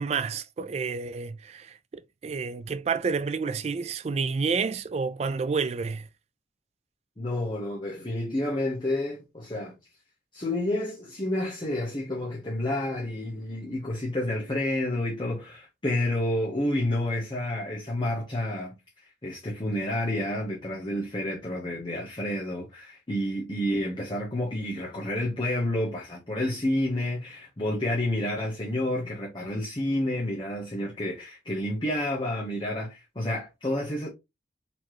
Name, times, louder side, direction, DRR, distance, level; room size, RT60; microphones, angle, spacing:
voice 1, 0.0-1.7 2.2-6.1, right 5 dB, 35° right, 0.3 m, -29 dB
voice 2, 7.2-9.7 10.3-18.8 19.2-34.1, left 1 dB, 25° left, 0.9 m, -29 dB
4.3 x 2.9 x 3.0 m
head